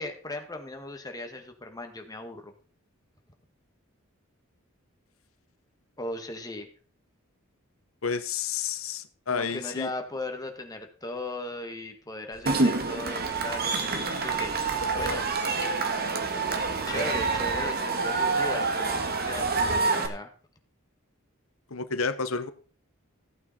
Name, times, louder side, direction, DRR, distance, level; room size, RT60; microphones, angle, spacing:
voice 1, 0.0-2.5 6.0-6.7 9.3-15.3 16.9-20.3, left 2 dB, 20° left, 1.9 m, -37 dB
voice 2, 8.0-9.9 21.7-22.5, left 5 dB, 90° left, 1.0 m, -30 dB
sound 1, 12.3-19.8, right 1 dB, 70° right, 1.9 m, -45 dB
Cheering / Crowd, 12.5-20.1, right 3 dB, 50° right, 1.7 m, -27 dB
15.0 x 8.6 x 4.3 m
head